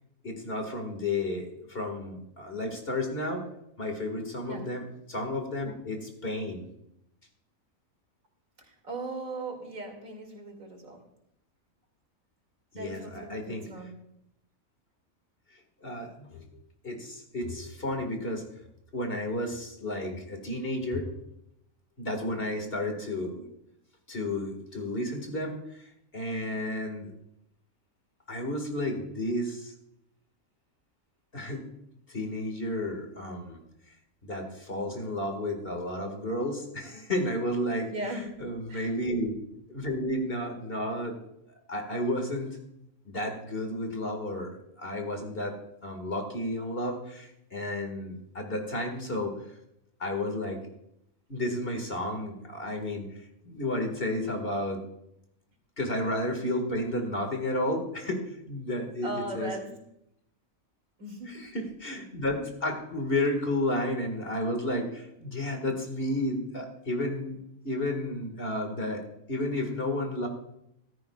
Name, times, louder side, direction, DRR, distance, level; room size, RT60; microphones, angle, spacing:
voice 1, 0.2-3.5 3.8-6.6 12.7-13.7 15.5-16.5 16.8-18.4 18.9-21.2 22.0-23.4 24.1-27.1 28.3-29.7 31.3-31.6 32.1-33.6 34.2-39.4 39.7-41.2 41.7-42.6 43.1-49.6 50.0-50.6 51.3-54.8 55.8-59.5 61.3-67.4 67.6-70.3, left 1 dB, 45° left, 4 dB, 2.2 m, -32 dB
voice 2, 8.6-11.0 12.7-13.9 22.1-22.4 37.9-38.3 38.7-38.9 59.0-59.7 61.0-61.4, right 2 dB, 80° right, 2 dB, 3.0 m, -38 dB
14.5 x 13.5 x 2.4 m, 0.78 s
omnidirectional pair, 1.4 m